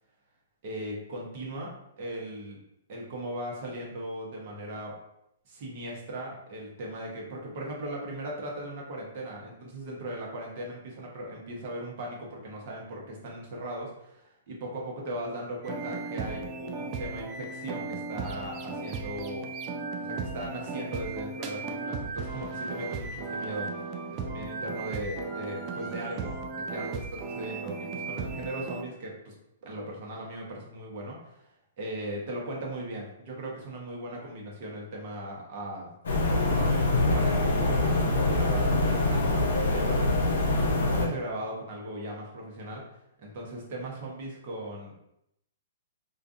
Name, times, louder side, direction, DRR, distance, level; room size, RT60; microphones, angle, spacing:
voice 1, 0.6-2.6 2.9-4.9 5.5-19.5 20.0-23.7 24.1-29.3 29.6-31.5 31.8-35.9 36.3-40.2 40.8-42.8 43.2-44.9, right 1 dB, 50° right, -2 dB, 0.9 m, -38 dB
sound 1, 15.6-28.8, right 4 dB, 35° right, 0.4 m, -36 dB
sound 2, 36.0-41.1, left 2 dB, 75° left, 0.6 m, -24 dB
2.5 x 2.3 x 2.5 m, 0.80 s
hypercardioid pair, 125°, 0 cm